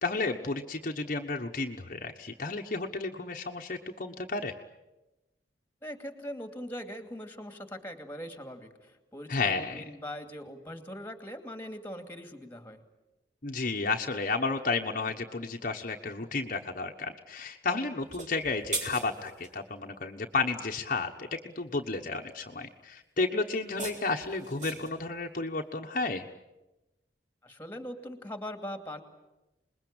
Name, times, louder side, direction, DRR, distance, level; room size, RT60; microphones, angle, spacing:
voice 1, 0.0-4.5 9.3-9.8 13.4-26.3, left 3 dB, 50° left, 2 dB, 1.2 m, -32 dB
voice 2, 5.8-12.8 27.4-29.0, equal, 10° left, 7 dB, 2.5 m, -41 dB
sound 1, 18.0-19.6 23.5-25.0, right 3 dB, 45° right, 4.5 m, -39 dB
26.5 x 21.0 x 8.8 m, 1.0 s
head